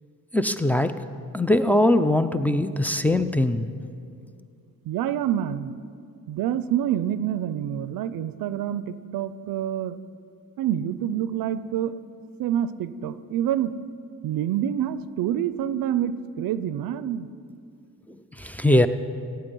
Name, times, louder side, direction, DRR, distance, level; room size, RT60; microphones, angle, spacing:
voice 1, 0.3-1.0 1.3-3.7 18.4-18.9, left 1 dB, 5° left, 6 dB, 0.5 m, -21 dB
voice 2, 4.9-5.7 6.3-10.0 10.6-11.9 12.4-13.7 14.2-17.3, right 10 dB, 85° right, 14 dB, 0.5 m, -27 dB
15.5 x 9.1 x 5.4 m, 2.4 s
cardioid pair, 65°, 34 cm